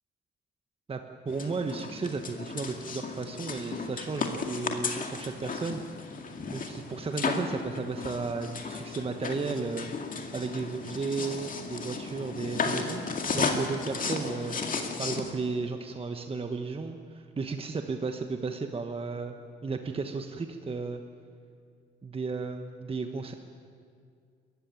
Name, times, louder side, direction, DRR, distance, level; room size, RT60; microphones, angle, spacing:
voice 1, 1.2-5.8 6.5-9.9 10.3-14.6 15.0-19.4 19.6-21.0 22.0-23.3, right 4 dB, 30° right, 6 dB, 1.2 m, -34 dB
sound 1, 1.3-15.3, left 4 dB, 45° left, 2.2 m, -34 dB
22.0 x 14.5 x 9.6 m, 2.2 s
cardioid pair, 90°, 20 cm